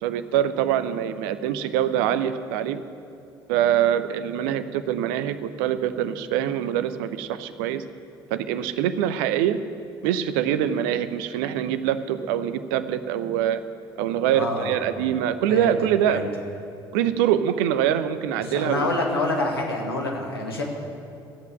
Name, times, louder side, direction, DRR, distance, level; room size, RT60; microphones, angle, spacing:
voice 1, 0.0-2.8 3.5-7.8 8.3-9.6 10.0-13.6 14.0-16.2 16.9-18.9, right 10 dB, 60° right, 12 dB, 0.7 m, -24 dB
voice 2, 14.3-14.8 15.5-15.8 16.1-16.3 18.4-20.6, left 2 dB, 80° left, 0 dB, 1.8 m, -27 dB
13.5 x 8.2 x 8.9 m, 2.6 s
figure-of-eight pair, 55°, 12 cm